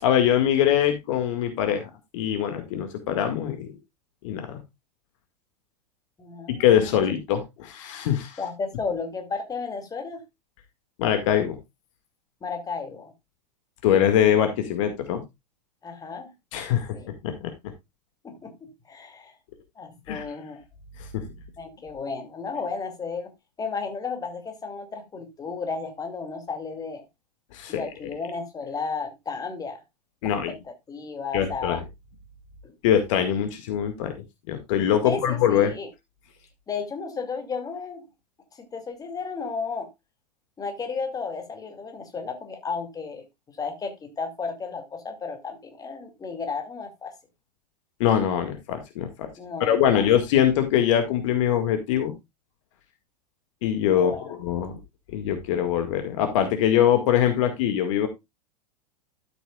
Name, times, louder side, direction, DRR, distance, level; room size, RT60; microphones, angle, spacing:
voice 1, 0.0-3.7 4.2-4.6 6.5-8.4 11.0-11.6 13.8-15.2 16.5-17.5 20.1-20.3 21.0-21.2 27.5-27.9 30.2-30.5 31.3-31.8 32.8-34.1 34.5-35.8 48.0-49.3 49.6-52.1 53.6-54.7 55.1-58.1, left 10 dB, 50° left, 1.9 m, -23 dB
voice 2, 6.2-6.9 8.4-10.2 12.4-13.1 15.8-16.3 16.9-17.1 18.2-19.3 19.8-20.6 21.6-23.3 23.6-27.0 27.7-29.8 30.2-30.4 30.9-31.8 32.6-32.7 35.0-35.9 36.7-38.1 38.6-39.9 40.6-47.1 49.4-50.0 54.0-54.3, left 4 dB, 15° left, 2.4 m, -33 dB
12.5 x 8.1 x 2.3 m
figure-of-eight pair, 90°, 21 cm